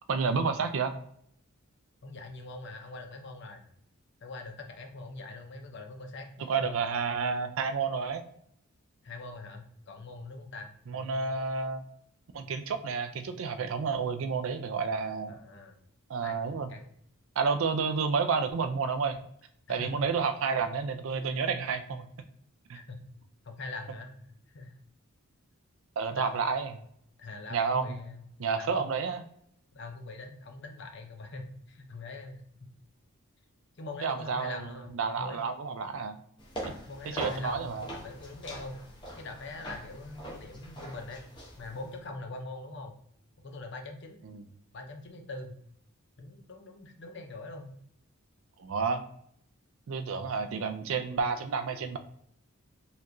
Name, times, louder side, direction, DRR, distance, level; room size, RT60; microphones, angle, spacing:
voice 1, 0.1-0.9 6.5-8.2 10.9-11.8 12.3-15.4 16.1-16.7 17.4-19.2 19.7-22.1 22.7-22.8 26.0-26.7 27.5-27.9 28.4-29.3 34.0-34.7 34.9-36.2 36.6-36.7 37.1-37.9 44.2-44.4 48.6-49.0 49.9-52.0, right 5 dB, 65° right, 9 dB, 0.4 m, -30 dB
voice 2, 2.0-3.6 4.2-6.5 9.0-11.4 15.3-15.8 16.2-16.9 19.7-19.9 22.7-23.0 23.4-24.8 26.1-26.5 27.2-28.3 28.6-28.9 29.7-32.4 33.8-35.4 36.9-38.8 39.2-41.2 41.6-42.9 43.4-44.2 44.7-45.6 46.2-47.7, left 2 dB, 50° left, 4 dB, 0.6 m, -43 dB
sound 1, 36.4-42.0, right 1 dB, 20° left, 0.8 m, -42 dB
4.2 x 3.0 x 2.6 m, 0.69 s
head